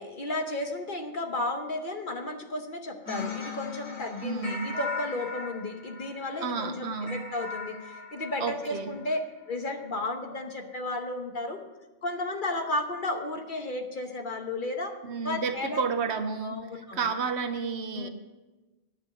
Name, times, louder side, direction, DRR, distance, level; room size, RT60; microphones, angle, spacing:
voice 1, 0.0-9.2 9.5-11.6 12.0-14.9 15.2-15.8 16.4-17.1 17.9-18.1, left 2 dB, 45° left, 4 dB, 1.1 m, -33 dB
sound 1, 3.0-9.2, left 4 dB, 90° left, 4.6 m, -39 dB
voice 2, 4.2-4.8 6.4-7.2 8.4-9.0 15.0-18.1, right 5 dB, 65° right, 8 dB, 1.0 m, -31 dB
9.9 x 7.0 x 7.7 m, 1.1 s
omnidirectional pair, 1.3 m